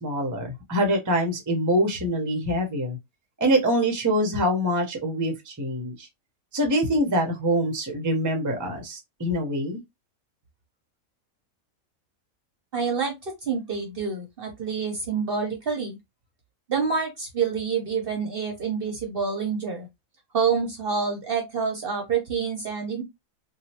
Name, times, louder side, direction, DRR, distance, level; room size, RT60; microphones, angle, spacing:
voice 1, 0.0-3.0 3.4-6.1 6.5-9.8, equal, 20° right, 0.6 m, -25 dB
voice 2, 12.7-16.0 16.7-19.9 20.3-23.0, right 5 dB, 50° right, 0.8 m, -27 dB
3.0 x 2.3 x 2.7 m
omnidirectional pair, 1.4 m